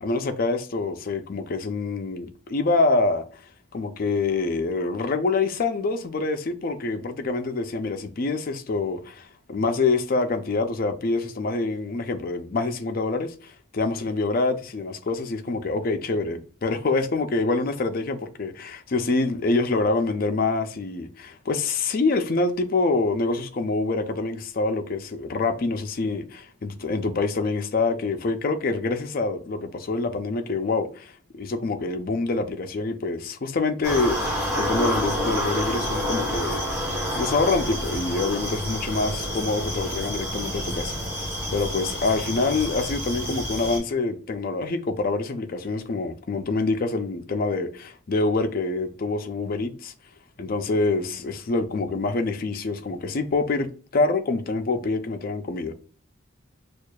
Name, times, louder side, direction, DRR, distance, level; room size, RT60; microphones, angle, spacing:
voice 1, 0.0-3.4 3.7-36.9 37.1-41.0 41.5-49.9 50.4-53.7 53.9-55.7, left 3 dB, 45° left, 0.5 m, -26 dB
sound 1, 33.8-43.8, equal, 10° right, 1.8 m, -28 dB
6.3 x 2.4 x 2.2 m
head